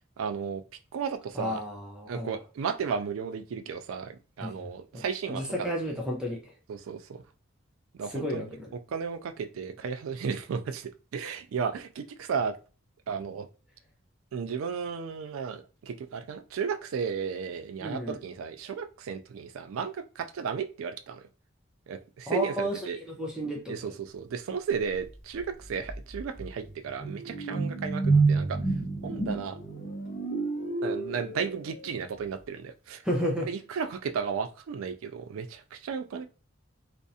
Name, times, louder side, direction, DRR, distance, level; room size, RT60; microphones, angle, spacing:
voice 1, 0.2-0.6 0.9-1.6 2.1-5.5 6.7-7.2 8.0-8.5 8.9-12.6 13.1-13.5 14.3-21.2 21.9-23.0 23.7-28.6 29.0-29.6 30.8-33.0 33.5-36.3, right 6 dB, 90° right, 0.3 m, -34 dB
voice 2, 1.3-2.4 4.4-4.7 4.9-6.5 8.1-8.7 17.8-18.2 22.3-23.9 33.0-33.5, equal, 5° right, 0.5 m, -32 dB
sound 1, 25.4-25.5 25.8-32.0, right 3 dB, 40° left, 0.7 m, -29 dB
2.3 x 2.0 x 2.6 m
head